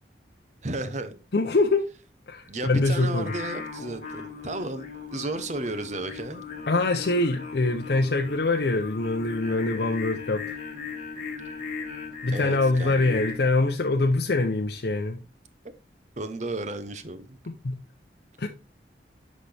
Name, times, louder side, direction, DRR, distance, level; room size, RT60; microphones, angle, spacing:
voice 1, 0.6-1.2 2.5-6.5 12.3-13.2 16.2-17.4, right 2 dB, 40° right, 0.9 m, -33 dB
voice 2, 1.3-1.9 2.3-3.3 6.7-10.6 12.2-15.2 17.6-17.8 18.4-18.5, left 2 dB, 60° left, 0.6 m, -24 dB
Singing, 3.2-13.3, left 5 dB, 45° left, 1.8 m, -38 dB
11.5 x 4.1 x 3.4 m
head